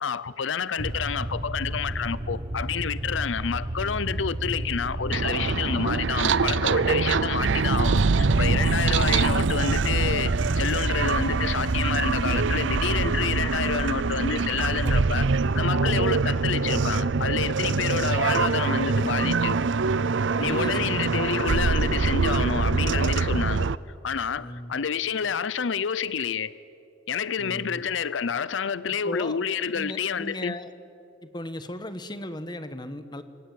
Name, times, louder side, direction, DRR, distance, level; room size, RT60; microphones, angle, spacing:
voice 1, 0.0-15.3 15.5-19.6 20.4-23.7 24.0-26.5 27.1-30.6, left 6 dB, 80° left, 17 dB, 0.6 m, -29 dB
sound 1, 0.8-13.3, right 1 dB, 35° right, 1.0 m, -32 dB
sound 2, 5.1-23.8, right 4 dB, 75° right, 0.6 m, -24 dB
voice 2, 8.6-9.1 14.6-15.0 20.3-21.2 24.4-24.7 27.4-27.8 29.0-29.4 29.7-30.7 31.2-33.2, left 1 dB, 25° left, 11 dB, 1.3 m, -37 dB
26.5 x 23.5 x 9.4 m, 2.7 s
head